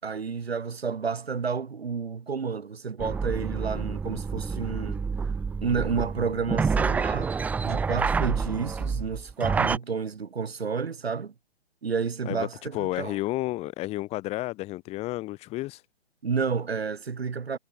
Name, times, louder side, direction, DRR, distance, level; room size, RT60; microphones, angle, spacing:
voice 1, 0.0-5.3 5.6-7.3 7.6-11.3 11.8-13.2 16.2-17.6, right 5 dB, 65° right, 6.0 m, -30 dB
sound 1, 3.0-9.8, right 5 dB, 5° right, 0.8 m, -28 dB
voice 2, 12.7-15.8, left 18 dB, 20° left, 1.8 m, -31 dB
figure-of-eight pair, 130°, 32 cm